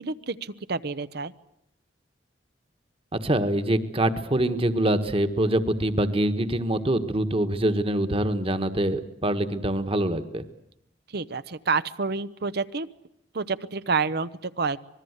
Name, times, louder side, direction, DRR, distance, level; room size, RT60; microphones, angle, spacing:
voice 1, 0.0-1.3 11.1-12.9 13.3-14.8, right 4 dB, 60° right, 14 dB, 0.8 m, -28 dB
voice 2, 3.2-10.4, right 1 dB, 30° right, 10 dB, 1.5 m, -24 dB
26.0 x 21.0 x 8.2 m, 0.79 s
head